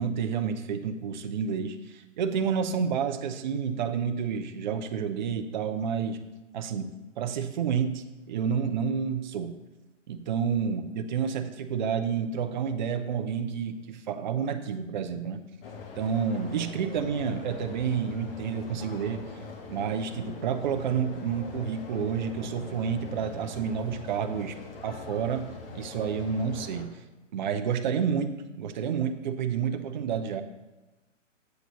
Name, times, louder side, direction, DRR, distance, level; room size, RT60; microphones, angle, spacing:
voice 1, 0.0-6.2 6.5-9.6 10.1-15.4 16.0-19.3 19.7-24.6 24.8-27.0 27.3-30.4, right 7 dB, 35° right, 7 dB, 0.6 m, -30 dB
sound 1, 15.6-26.9, left 4 dB, 45° left, 1.3 m, -42 dB
8.0 x 4.0 x 6.6 m, 1.1 s
hypercardioid pair, 140°, 38 cm